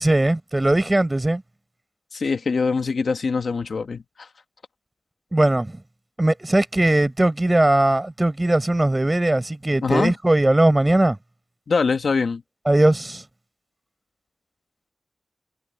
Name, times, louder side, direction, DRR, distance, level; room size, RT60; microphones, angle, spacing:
voice 1, 0.0-1.4 5.3-5.8 6.2-11.2 12.7-13.2, right 1 dB, 20° right, 4.3 m, -19 dB
voice 2, 2.1-4.3 9.8-10.1 11.7-12.4, left 4 dB, 75° left, 1.6 m, -23 dB
wide cardioid pair, 85°, 0 cm